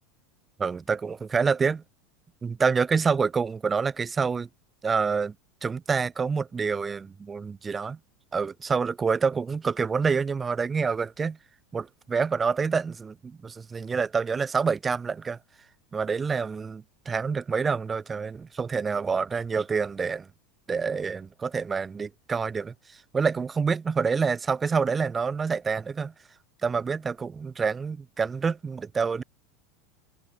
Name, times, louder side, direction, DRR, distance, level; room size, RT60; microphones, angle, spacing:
voice 1, 0.6-1.8 2.4-4.5 4.8-5.3 5.6-8.0 8.3-11.4 11.7-15.4 15.9-20.3 20.7-22.7 23.1-26.1 26.6-29.2, right 5 dB, 20° right, 2.4 m, -27 dB
figure-of-eight pair, 80°, 0 cm